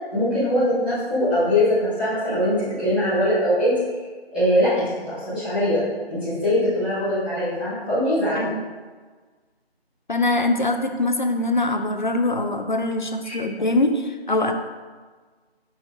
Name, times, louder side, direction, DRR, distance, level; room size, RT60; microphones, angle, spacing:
voice 1, 0.1-3.7 4.3-5.8 6.1-8.5 13.2-13.3, left 1 dB, 10° right, -19 dB, 1.3 m, -22 dB
voice 2, 10.1-14.5, left 2 dB, 50° left, 6 dB, 0.5 m, -23 dB
6.0 x 4.2 x 3.8 m, 1.4 s
figure-of-eight pair, 175°, 32 cm